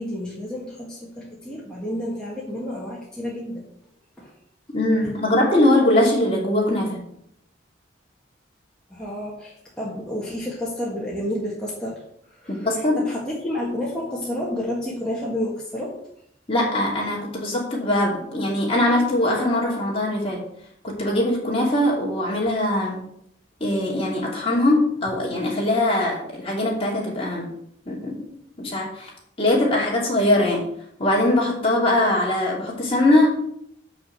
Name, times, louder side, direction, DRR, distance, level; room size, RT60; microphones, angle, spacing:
voice 1, 0.0-3.6 4.2-4.3 5.0-5.1 8.9-12.0 12.3-16.0, left 1 dB, 5° left, -6 dB, 1.6 m, -30 dB
voice 2, 4.7-7.0 12.5-13.1 16.5-20.4 20.8-23.0 23.6-27.5 27.9-28.3 28.6-29.1 29.4-30.6 31.0-33.3, left 1 dB, 30° left, -3 dB, 2.7 m, -21 dB
7.3 x 6.1 x 6.4 m, 0.72 s
head